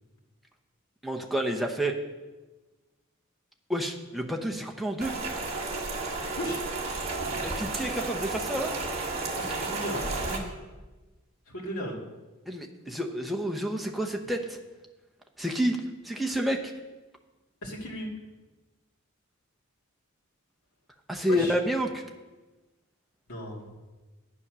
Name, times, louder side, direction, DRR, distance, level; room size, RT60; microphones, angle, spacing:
voice 1, 1.0-1.9 3.7-5.1 7.4-8.7 12.5-14.6 15.4-15.8 16.0-16.7 21.1-22.0, equal, ahead, 2 dB, 0.9 m, -29 dB
Rain, 5.0-10.4, right 3 dB, 30° right, 1.5 m, -32 dB
voice 2, 6.4-6.7 9.4-10.5 11.5-12.0 17.6-18.1 21.3-21.6 23.3-23.7, equal, 90° left, -2 dB, 2.4 m, -36 dB
9.9 x 8.4 x 6.2 m, 1.2 s
head